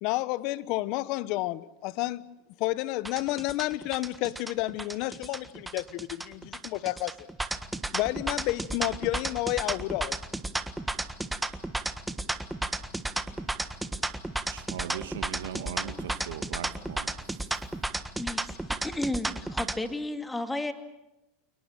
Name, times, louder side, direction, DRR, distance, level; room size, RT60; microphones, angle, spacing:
voice 1, 0.0-2.2 2.6-7.3 7.9-10.2, left 17 dB, 55° left, 1.0 m, -30 dB
sound 1, 3.1-19.8, right 2 dB, 5° right, 1.5 m, -33 dB
voice 2, 13.2-14.0 14.5-17.8, right 9 dB, 90° right, 2.0 m, -41 dB
voice 3, 18.2-20.7, left 1 dB, 10° left, 2.3 m, -33 dB
29.0 x 20.5 x 7.5 m
supercardioid pair, 115°, 0 cm